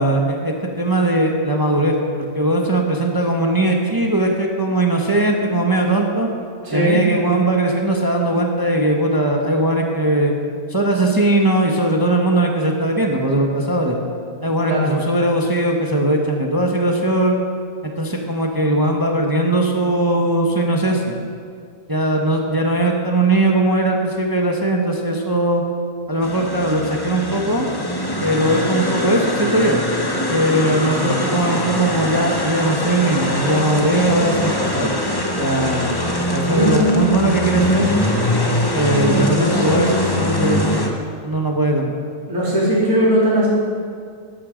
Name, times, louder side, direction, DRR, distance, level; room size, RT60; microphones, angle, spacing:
voice 1, 0.0-6.3 6.7-10.3 10.7-14.0 14.4-17.4 17.8-21.2 21.9-25.6 26.1-27.7 28.2-29.8 30.3-34.9 35.3-36.0 36.3-37.9 38.7-40.9 41.2-42.0, right 1 dB, 15° right, 1 dB, 1.0 m, -19 dB
voice 2, 6.6-7.0 14.6-14.9 36.5-37.0 39.0-39.8 42.3-43.5, equal, 80° right, -7 dB, 4.2 m, -19 dB
sound 1, 26.2-40.9, left 1 dB, 20° left, 1.0 m, -22 dB
13.5 x 11.5 x 5.1 m, 2.3 s
omnidirectional pair, 1.5 m